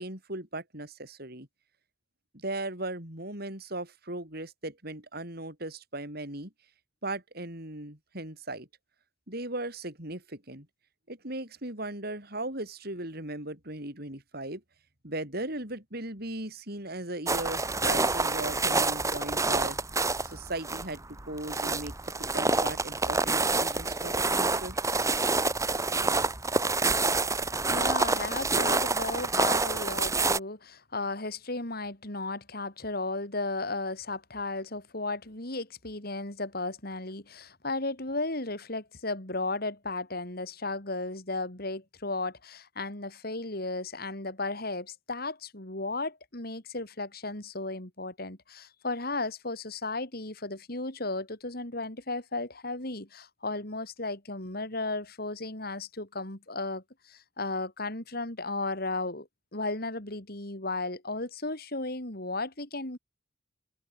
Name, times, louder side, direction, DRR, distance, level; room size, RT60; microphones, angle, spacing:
voice 1, 0.0-1.5 2.3-6.5 7.0-8.7 9.3-10.7 11.1-14.6 15.0-19.8 20.2-24.8, right 2 dB, 55° right, 7.9 m, -37 dB
sound 1, 17.3-30.4, right 3 dB, 15° right, 2.1 m, -27 dB
voice 2, 27.7-63.0, left 2 dB, 55° left, 4.6 m, -35 dB
head